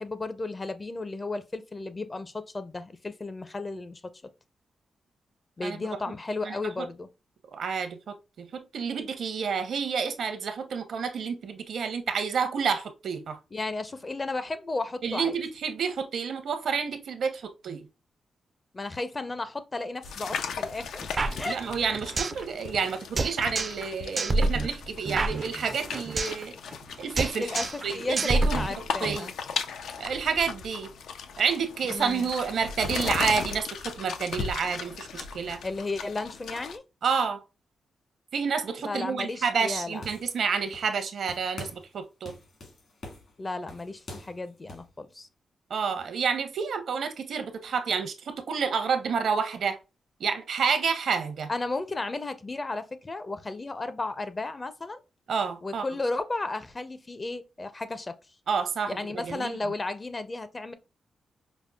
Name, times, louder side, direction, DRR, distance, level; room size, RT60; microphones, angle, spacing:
voice 1, 0.0-4.1 5.6-7.1 13.5-15.3 18.7-21.6 27.4-27.7 27.9-29.3 31.9-32.3 35.6-36.8 38.8-40.0 43.4-45.3 51.5-55.0 55.6-58.2 58.9-60.7, left 3 dB, 25° left, 0.5 m, -34 dB
voice 2, 6.4-6.9 7.5-13.4 15.0-17.9 21.4-26.6 27.0-27.5 27.8-29.3 30.0-30.9 31.4-35.6 37.0-37.4 38.3-42.3 45.7-49.8 50.2-51.5 55.3-55.9 58.5-59.5, right 6 dB, 70° right, 0.7 m, -29 dB
sound 1, 20.0-36.8, left 6 dB, 90° left, 0.4 m, -37 dB
sound 2, 21.2-22.4 22.7-22.8 23.2-23.9 24.2-26.4 26.7-26.9 27.2-27.9 28.2-29.2, right 2 dB, 35° right, 0.3 m, -28 dB
sound 3, 39.7-41.0 41.3-41.9 42.2-44.9, left 1 dB, 60° left, 1.6 m, -45 dB
5.1 x 2.0 x 2.2 m
cardioid pair, 110°, 0 cm